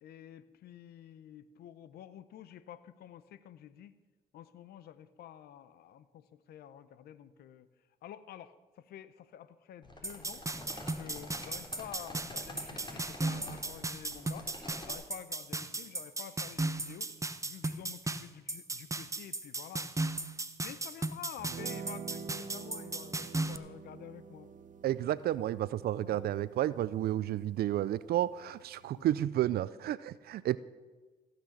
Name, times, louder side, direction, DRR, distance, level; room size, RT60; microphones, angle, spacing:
voice 1, 0.0-4.0 4.3-7.7 8.0-10.5 10.9-14.6 14.8-17.1 17.4-19.9 20.6-24.5 26.0-26.3 28.9-29.1, left 10 dB, 85° left, 15 dB, 0.7 m, -49 dB
sound 1, 9.8-14.9, left 1 dB, 30° left, 3.4 m, -47 dB
sound 2, 10.0-23.6, right 2 dB, 20° right, 0.9 m, -36 dB
sound 3, 21.4-29.1, right 6 dB, 55° right, 1.0 m, -48 dB
voice 2, 24.8-30.6, right 13 dB, 80° right, 18 dB, 0.4 m, -31 dB
15.5 x 6.1 x 8.5 m, 1.3 s
supercardioid pair, 60°, 16 cm